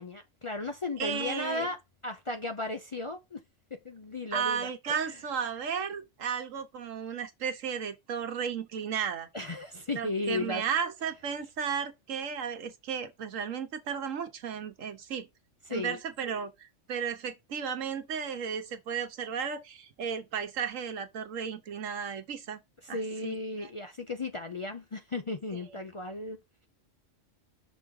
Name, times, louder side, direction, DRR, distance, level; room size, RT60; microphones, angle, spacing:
voice 1, 0.0-3.4 3.7-5.2 9.3-10.6 15.7-16.0 22.9-26.4, left 2 dB, 40° left, 0.5 m, -35 dB
voice 2, 1.0-1.7 4.3-9.3 9.9-15.3 15.7-22.6 22.9-23.7 25.7-25.8, right 7 dB, 90° right, 1.4 m, -34 dB
6.1 x 3.6 x 4.8 m
omnidirectional pair, 1.3 m